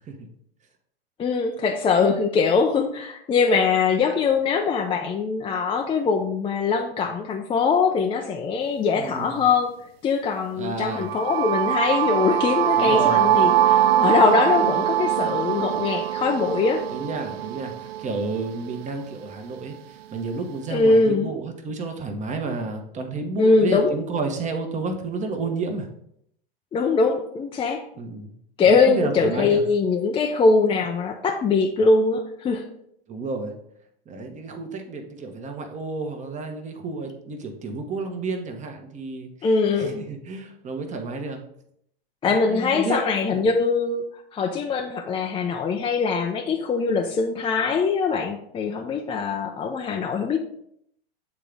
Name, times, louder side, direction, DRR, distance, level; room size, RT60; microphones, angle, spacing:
voice 1, 1.2-9.7 10.0-16.8 20.7-21.3 23.4-23.9 26.7-27.8 28.6-32.6 39.4-40.1 42.2-44.0 44.3-50.4, left 4 dB, 20° left, 2 dB, 0.4 m, -22 dB
voice 2, 8.9-9.4 10.6-11.1 12.7-13.3 14.6-14.7 16.9-25.9 28.0-28.3 28.6-29.6 33.1-33.5 34.1-39.3 39.7-41.4 42.3-43.4, right 3 dB, 25° right, 5 dB, 1.1 m, -31 dB
sound 1, 10.9-18.8, right 11 dB, 80° right, 0.5 m, -22 dB
8.3 x 3.7 x 3.4 m, 0.73 s
hypercardioid pair, 105°, 30 cm